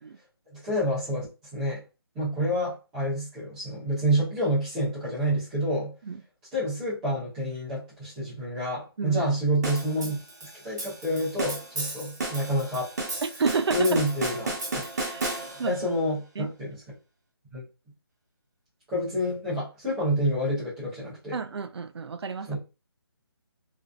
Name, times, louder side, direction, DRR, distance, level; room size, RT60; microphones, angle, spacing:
voice 1, 0.5-1.3 1.5-1.8 2.1-5.9 6.5-10.2 10.6-12.9 13.7-14.8 15.6-17.0 17.5-17.6 18.9-21.3 22.5-22.6, equal, 5° right, 0.3 m, -28 dB
sound 1, 9.6-15.8, right 2 dB, 40° right, 0.8 m, -33 dB
voice 2, 13.2-14.0 14.9-15.8 16.4-16.5 21.3-22.6, right 5 dB, 85° right, 0.4 m, -30 dB
2.5 x 2.2 x 2.2 m
hypercardioid pair, 170°, 13 cm